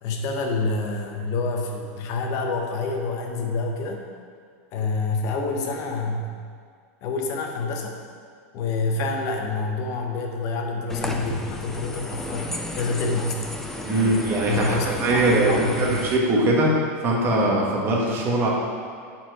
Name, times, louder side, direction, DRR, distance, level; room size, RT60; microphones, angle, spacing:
voice 1, 0.0-4.0 4.7-6.3 7.0-8.0 8.5-13.6 13.9-16.0, left 3 dB, 40° left, 2 dB, 0.9 m, -27 dB
sound 1, 10.9-16.2, left 1 dB, 5° left, 0.4 m, -33 dB
voice 2, 13.9-16.7 17.0-18.5, right 2 dB, 30° right, -3 dB, 1.3 m, -21 dB
7.6 x 4.4 x 4.6 m, 2.1 s
supercardioid pair, 155°, 8 cm